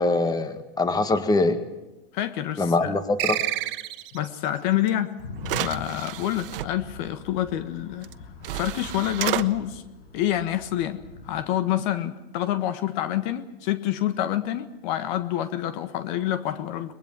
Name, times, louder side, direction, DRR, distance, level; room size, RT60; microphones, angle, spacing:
voice 1, 0.0-1.6 2.6-3.4, left 2 dB, 15° left, 9 dB, 1.9 m, -23 dB
voice 2, 2.1-3.0 4.1-5.1 5.6-8.1 8.5-9.8 10.1-16.9, left 12 dB, 50° left, 11 dB, 1.5 m, -27 dB
sound 1, 3.2-4.4, right 16 dB, 40° right, 1.4 m, -28 dB
sound 2, 4.9-5.0 5.4-6.7 8.0-8.1 8.4-9.5, right 14 dB, 65° right, 1.3 m, -31 dB
sound 3, 5.2-11.5, left 3 dB, 85° left, 6.5 m, -42 dB
23.0 x 21.0 x 7.5 m, 1.0 s
hypercardioid pair, 125°, 29 cm